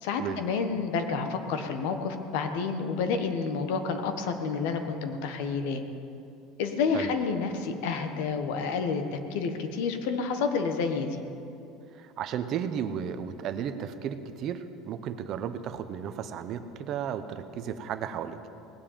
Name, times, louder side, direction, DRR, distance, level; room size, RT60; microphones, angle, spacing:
voice 1, 0.0-5.8 6.6-11.2, left 5 dB, 75° left, 7 dB, 1.4 m, -29 dB
voice 2, 12.0-18.4, right 8 dB, 40° right, 10 dB, 0.7 m, -34 dB
19.0 x 7.5 x 8.9 m, 2.6 s
cardioid pair, 170°, 0 cm